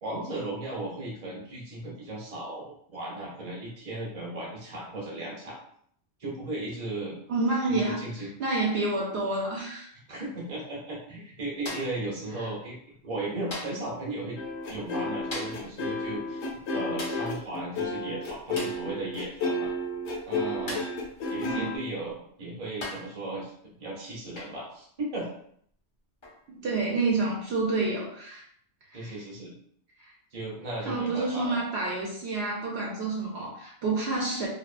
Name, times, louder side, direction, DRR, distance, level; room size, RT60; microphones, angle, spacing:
voice 1, 0.0-5.6 6.2-7.2 7.7-8.3 9.9-14.4 14.7-16.5 16.7-19.7 20.3-20.8 21.3-25.3 28.9-29.5 30.3-31.6, right 2 dB, 35° right, -4 dB, 0.8 m, -36 dB
voice 2, 7.3-8.0 8.4-9.9 21.4-21.7 26.5-28.4 28.9-29.2 30.0-30.1 30.9-34.5, right 3 dB, 70° right, -3 dB, 0.9 m, -28 dB
sound 1, 11.7-12.1 13.5-13.9 15.3-15.7 17.0-17.3 18.6-18.9 20.7-21.0 22.1-22.2 22.8-23.2 24.4-24.6 26.2-26.4, left 1 dB, 45° left, 0.4 m, -38 dB
sound 2, 14.4-21.8, left 2 dB, 85° left, 0.9 m, -32 dB
2.7 x 2.2 x 2.4 m, 0.64 s
omnidirectional pair, 1.2 m